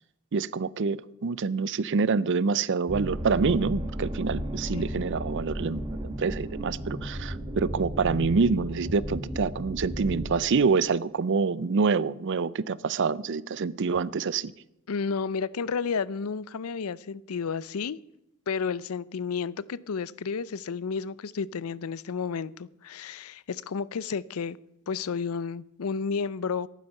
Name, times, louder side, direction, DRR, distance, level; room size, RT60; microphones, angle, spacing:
voice 1, 0.3-14.5, right 4 dB, 55° right, 0.5 m, -26 dB
sound 1, 2.9-10.3, equal, 20° right, 1.7 m, -34 dB
voice 2, 14.9-18.0 18.5-24.6 24.9-26.7, left 5 dB, 75° left, 0.5 m, -31 dB
14.5 x 11.5 x 5.5 m
head